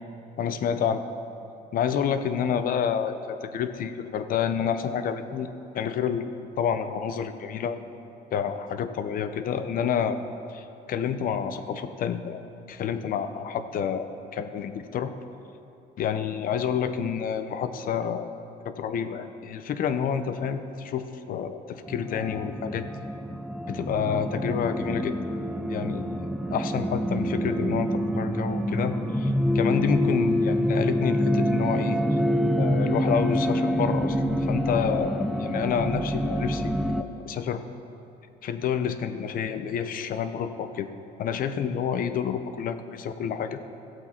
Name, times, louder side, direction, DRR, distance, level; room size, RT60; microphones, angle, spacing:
voice 1, 0.4-1.0 1.7-5.5 5.7-6.3 6.6-7.8 8.3-10.2 10.5-12.4 12.7-15.1 16.0-18.3 18.6-23.1 23.7-25.2 25.7-26.1 26.5-37.6 38.4-40.9 41.2-43.8, left 7 dB, 55° left, 10 dB, 0.7 m, -29 dB
sound 1, 21.9-37.0, equal, ahead, 0.4 m, -26 dB
15.0 x 8.0 x 4.4 m, 2.8 s
cardioid pair, 110°, 17 cm